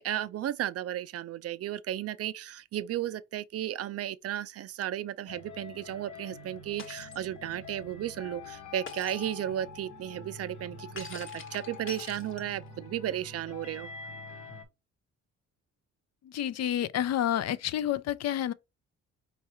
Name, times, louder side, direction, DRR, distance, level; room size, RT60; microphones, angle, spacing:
voice 1, 0.0-13.9, right 11 dB, 55° right, 0.4 m, -34 dB
sound 1, 5.3-14.6, left 4 dB, 80° left, 1.0 m, -46 dB
Shatter, 6.8-7.2 8.9-9.3 11.0-12.7, left 4 dB, 40° left, 1.1 m, -45 dB
voice 2, 16.2-18.5, left 11 dB, 60° left, 0.5 m, -29 dB
4.5 x 2.4 x 4.2 m
cardioid pair, 90°, 30 cm